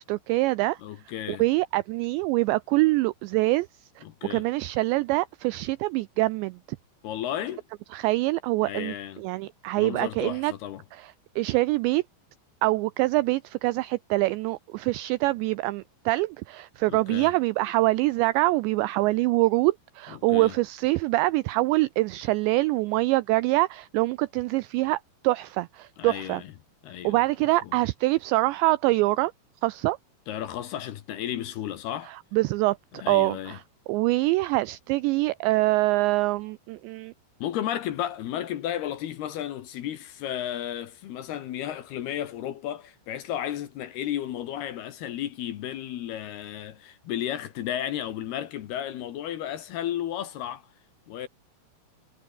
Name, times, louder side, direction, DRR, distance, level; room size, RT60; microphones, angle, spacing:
voice 1, 0.0-0.8 1.3-3.7 4.3-6.6 7.9-10.5 11.0-11.1 11.4-12.0 12.6-25.0 25.2-26.4 27.0-29.3 29.6-30.0 32.3-33.6 33.9-37.1, right 20 dB, 85° right, 2.5 m, -24 dB
voice 2, 0.8-1.5 4.0-4.5 7.0-7.6 8.6-9.2 9.7-10.8 16.9-17.3 20.1-20.6 26.0-26.5 26.8-27.2 27.6-27.8 30.3-32.1 32.9-33.6 37.4-50.6 51.1-51.3, left 11 dB, 65° left, 2.9 m, -33 dB
omnidirectional pair, 5.7 m